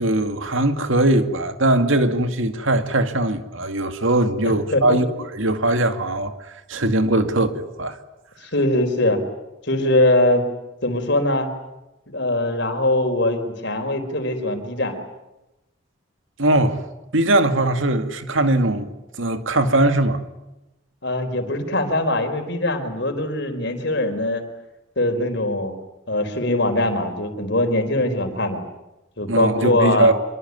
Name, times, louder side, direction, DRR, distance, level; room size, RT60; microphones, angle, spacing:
voice 1, 0.0-6.3 6.7-8.0 16.4-16.9 17.1-18.9 19.2-20.2 29.3-30.1, right 1 dB, 70° right, 2.2 m, -20 dB
voice 2, 4.4-5.0 8.4-9.2 9.6-10.5 10.8-11.5 12.1-15.0 21.0-24.4 25.0-25.7 26.1-28.6 29.2-30.1, left 1 dB, 55° left, 4.4 m, -22 dB
25.5 x 24.0 x 9.6 m
head